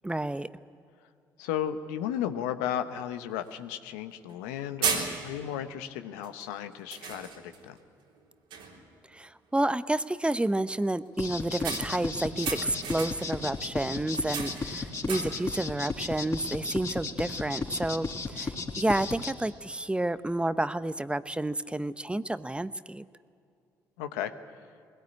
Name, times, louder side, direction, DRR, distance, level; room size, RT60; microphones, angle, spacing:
voice 1, 0.0-0.5 9.1-23.1, right 1 dB, 10° right, 14 dB, 0.8 m, -30 dB
voice 2, 1.4-7.8 24.0-24.3, left 10 dB, 90° left, 9 dB, 0.9 m, -34 dB
sound 1, 3.0-3.1 3.5-3.6 4.3-4.5 4.8-5.5 6.2-6.5 6.9-7.7 8.1-8.2 8.5-8.9 11.6-13.4 14.1-15.5, right 6 dB, 80° right, 3.4 m, -35 dB
sound 2, 11.2-19.3, left 4 dB, 35° left, 3.9 m, -34 dB
21.0 x 17.5 x 9.7 m, 2.5 s
hypercardioid pair, 55°, 9 cm